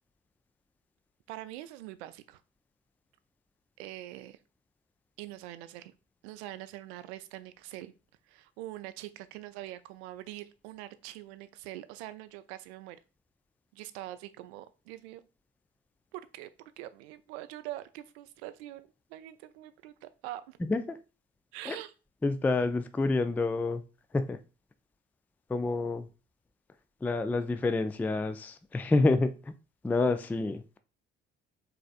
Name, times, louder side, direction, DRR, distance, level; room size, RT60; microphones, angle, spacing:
voice 1, 1.3-2.4 3.8-4.4 5.2-5.9 6.2-7.9 8.3-13.0 13.7-15.2 16.1-20.6 21.5-21.9, right 15 dB, 70° right, 12 dB, 0.5 m, -44 dB
voice 2, 22.2-23.8 24.1-24.4 25.5-26.1 27.0-29.5 29.8-30.8, left 3 dB, 5° left, 10 dB, 0.3 m, -28 dB
4.9 x 3.4 x 2.4 m, 0.32 s
figure-of-eight pair, 50°, 34 cm